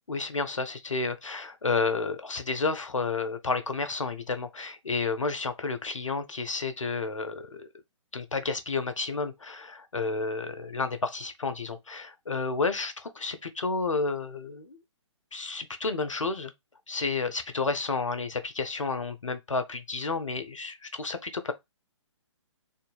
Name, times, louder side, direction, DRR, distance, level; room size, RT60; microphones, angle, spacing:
voice 1, 0.1-7.7 8.1-14.8 15.3-16.5 16.9-21.5, left 4 dB, 80° left, 0.7 m, -31 dB
3.8 x 2.6 x 2.3 m
figure-of-eight pair, 130°, 16 cm